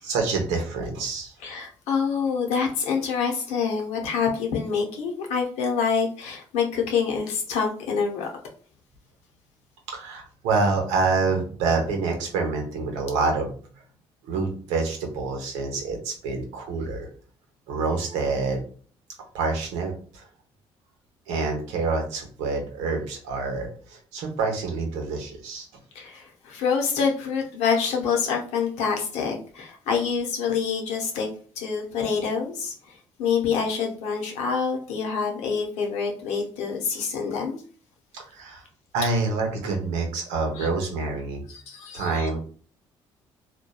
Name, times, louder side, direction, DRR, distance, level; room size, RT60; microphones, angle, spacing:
voice 1, 0.0-1.3 9.9-13.5 14.2-17.1 17.7-18.6 19.3-20.3 21.3-25.6 38.1-38.7 38.9-41.4 41.9-42.4, right 3 dB, 80° right, 2 dB, 0.7 m, -27 dB
voice 2, 1.4-8.3 25.9-31.3 31.6-37.6 40.5-40.7 41.5-42.3, left 6 dB, 80° left, 1 dB, 0.7 m, -26 dB
2.9 x 2.2 x 2.2 m, 0.43 s
supercardioid pair, 65°, 12 cm